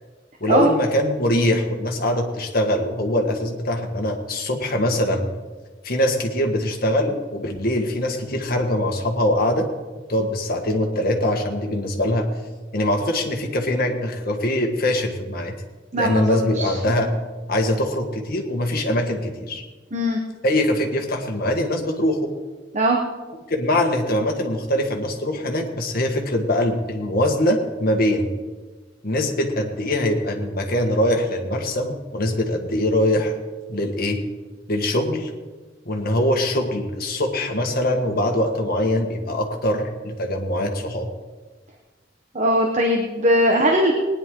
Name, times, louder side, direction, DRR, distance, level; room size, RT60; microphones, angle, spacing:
voice 1, 0.4-5.3 5.8-9.7 10.1-12.3 12.7-15.5 15.9-17.1 17.5-19.6 20.4-22.3 23.5-28.3 29.0-33.3 33.7-34.2 34.7-35.3 35.8-41.1, left 1 dB, 55° left, 2 dB, 1.6 m, -22 dB
voice 2, 15.9-17.0 19.9-20.2 22.7-23.0 42.3-43.9, equal, 40° right, 1 dB, 1.2 m, -20 dB
19.5 x 10.0 x 3.8 m, 1.3 s
head